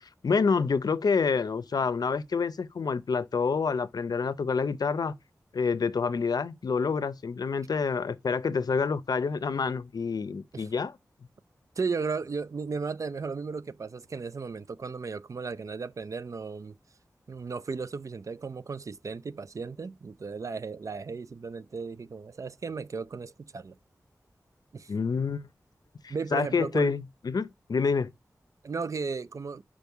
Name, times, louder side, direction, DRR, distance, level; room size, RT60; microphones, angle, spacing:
voice 1, 0.0-5.1 5.5-10.9 24.9-25.5 26.0-28.1, left 5 dB, 75° left, 0.6 m, -28 dB
voice 2, 11.8-16.8 17.3-23.8 24.7-24.9 26.1-26.9 28.6-29.6, right 4 dB, 55° right, 0.3 m, -35 dB
5.3 x 5.0 x 4.6 m
wide cardioid pair, 80°, 7 cm